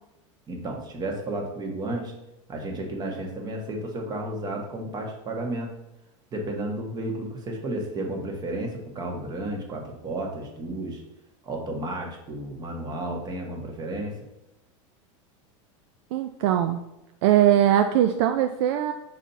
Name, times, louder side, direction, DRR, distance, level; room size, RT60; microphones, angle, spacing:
voice 1, 0.5-2.1 2.5-5.7 6.3-11.0 11.4-14.1, right 1 dB, 25° right, 1 dB, 1.4 m, -32 dB
voice 2, 16.1-16.8 17.2-18.9, right 11 dB, 60° right, 7 dB, 0.5 m, -21 dB
4.9 x 4.2 x 5.7 m, 0.90 s
supercardioid pair, 140°, 16 cm